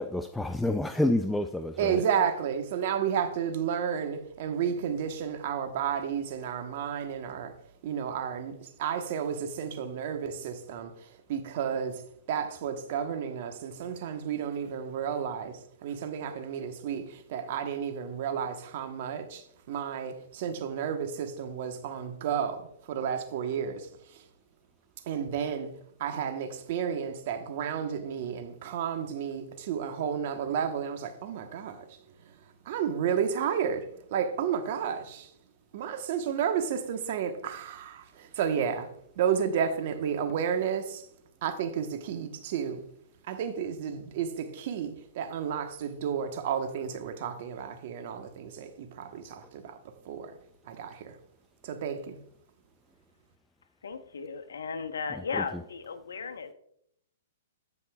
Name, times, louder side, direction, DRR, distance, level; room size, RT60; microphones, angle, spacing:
voice 1, 0.0-2.1 55.1-55.6, left 1 dB, 5° left, 0.3 m, -29 dB
voice 2, 1.8-7.5 7.8-10.9 11.3-12.0 12.3-23.9 25.1-25.7 26.0-31.8 32.7-33.9 34.1-35.3 35.7-38.9 39.2-41.0 41.4-42.8 43.3-49.8 50.1-50.3 50.7-51.1 51.6-52.2, right 8 dB, 55° right, 1.1 m, -32 dB
voice 3, 53.8-56.5, left 5 dB, 85° left, 1.0 m, -35 dB
16.0 x 5.4 x 2.3 m
hypercardioid pair, 140°, 0 cm